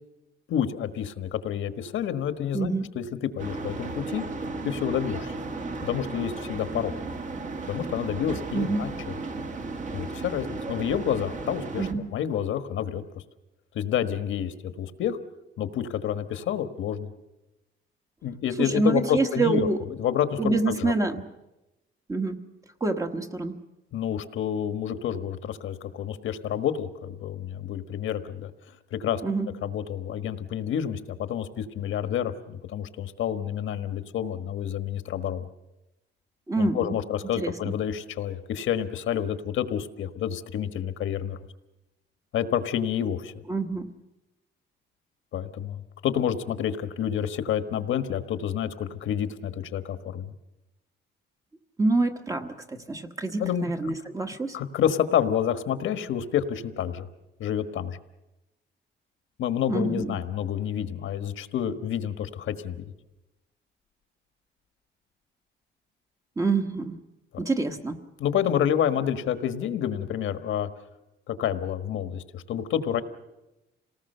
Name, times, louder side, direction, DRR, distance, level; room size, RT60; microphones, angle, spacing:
voice 1, 0.5-4.2 4.6-5.3 5.8-6.9 7.7-9.1 9.9-13.0 13.7-15.2 15.6-17.1 18.2-19.7 20.0-21.0 23.9-28.5 28.9-29.2 29.6-35.4 36.6-41.4 42.3-43.3 45.3-50.3 53.4-53.7 54.5-57.1 57.4-58.0 59.4-62.9 68.2-70.7 71.3-73.0, left 9 dB, 80° left, 10 dB, 1.4 m, -29 dB
voice 2, 2.5-2.9 8.5-8.9 11.8-12.0 18.6-19.8 20.4-21.3 22.1-22.4 22.8-23.6 29.2-29.5 36.5-37.0 37.4-37.5 43.5-43.9 51.8-54.6 59.7-60.2 66.4-67.0 67.4-68.0, right 3 dB, 15° right, 6 dB, 1.2 m, -26 dB
sound 1, 3.4-11.9, right 3 dB, 40° right, 1.5 m, -35 dB
27.5 x 19.0 x 6.7 m, 0.97 s
cardioid pair, 160°, 20 cm